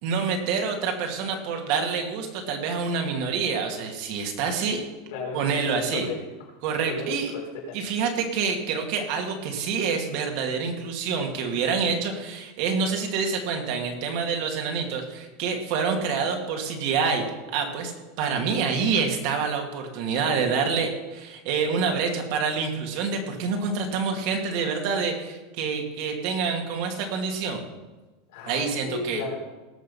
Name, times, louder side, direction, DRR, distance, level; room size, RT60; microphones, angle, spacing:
voice 1, 0.0-4.8 5.3-6.1 6.6-7.3 7.7-17.3 17.5-17.9 18.2-27.6 28.5-29.2, right 5 dB, 55° right, 3 dB, 2.3 m, -27 dB
voice 2, 5.1-6.3 6.7-7.8 28.3-29.4, left 4 dB, 70° left, -2 dB, 4.8 m, -34 dB
19.0 x 6.6 x 5.5 m, 1.1 s
supercardioid pair, 155°, 0 cm